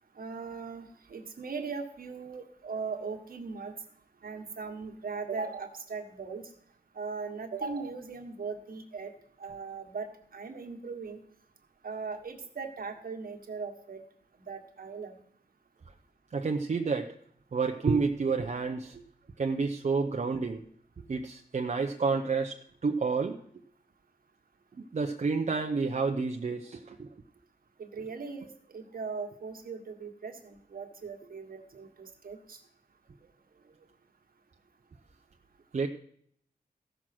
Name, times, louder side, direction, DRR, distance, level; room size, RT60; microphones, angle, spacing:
voice 1, 0.2-3.7 4.2-6.4 6.9-9.1 9.4-10.1 10.3-11.2 11.8-14.0 14.4-15.2 27.8-28.5 28.7-32.6, right 4 dB, 65° right, 5 dB, 1.6 m, -39 dB
voice 2, 16.3-17.1 17.5-19.0 19.4-20.6 21.1-23.4 24.9-27.1 35.7-35.9, right 4 dB, 45° right, 3 dB, 0.7 m, -29 dB
14.5 x 6.2 x 6.0 m, 0.64 s
wide cardioid pair, 100°, 16 cm